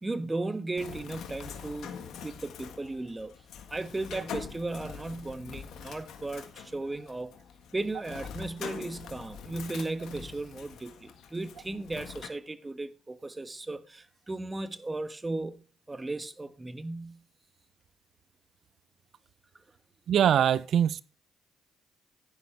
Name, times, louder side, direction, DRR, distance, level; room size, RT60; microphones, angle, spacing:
voice 1, 0.0-3.3 3.7-7.3 7.7-17.2, right 2 dB, 25° right, 1.2 m, -36 dB
Bird, 0.8-12.3, left 7 dB, 70° left, 1.5 m, -44 dB
voice 2, 20.1-21.0, right 9 dB, 65° right, 0.4 m, -23 dB
10.5 x 10.5 x 3.4 m
hypercardioid pair, 45°, 0 cm